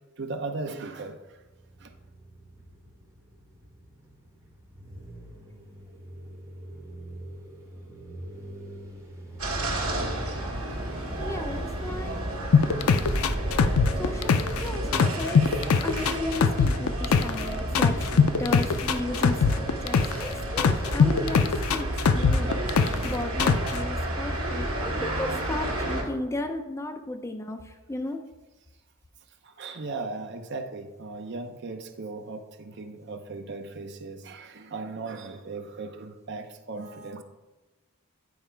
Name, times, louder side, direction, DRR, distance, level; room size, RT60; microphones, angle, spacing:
voice 1, 0.2-1.4 1.8-1.9 29.4-37.2, right 3 dB, 50° right, 7 dB, 0.6 m, -37 dB
sound 1, 1.3-15.5, right 1 dB, 15° right, 1.2 m, -44 dB
sound 2, 9.4-26.0, right 1 dB, 80° right, 1.6 m, -31 dB
voice 2, 11.2-12.2 13.9-22.5 23.0-28.2, left 2 dB, 15° left, 5 dB, 0.5 m, -35 dB
sound 3, 12.5-14.6 14.9-17.4 17.7-20.2 20.6-23.1 23.4-23.8, left 5 dB, 80° left, 0.4 m, -21 dB
9.5 x 4.8 x 4.5 m, 1.1 s
head